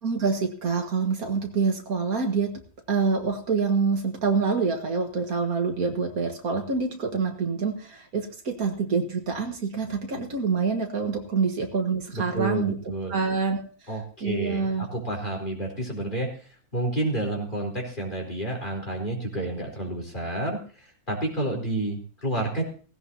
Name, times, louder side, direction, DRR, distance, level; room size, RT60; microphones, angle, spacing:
voice 1, 0.0-2.6 2.9-12.8 13.1-14.9, right 5 dB, 75° right, 3 dB, 2.1 m, -26 dB
voice 2, 12.1-13.1 13.9-16.3 16.7-22.6, right 1 dB, 30° left, 0 dB, 4.2 m, -30 dB
17.5 x 16.5 x 2.9 m, 0.40 s
omnidirectional pair, 1.6 m